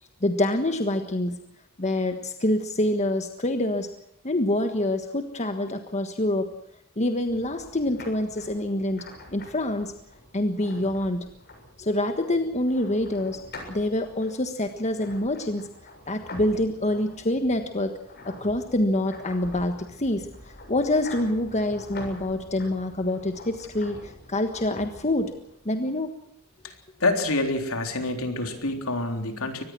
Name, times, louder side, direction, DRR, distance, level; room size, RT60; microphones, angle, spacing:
voice 1, 0.2-1.4 1.8-3.9 4.2-6.5 7.0-9.1 9.3-9.9 10.3-11.2 11.8-13.4 13.7-15.7 16.1-17.9 18.2-20.3 20.7-25.3 25.6-26.1, left 1 dB, 30° left, 7 dB, 1.4 m, -26 dB
sound 1, 7.3-25.6, left 1 dB, 45° left, 7.3 m, -46 dB
voice 2, 27.0-29.6, left 2 dB, 65° left, 5 dB, 3.7 m, -27 dB
24.0 x 19.5 x 6.2 m, 0.72 s
head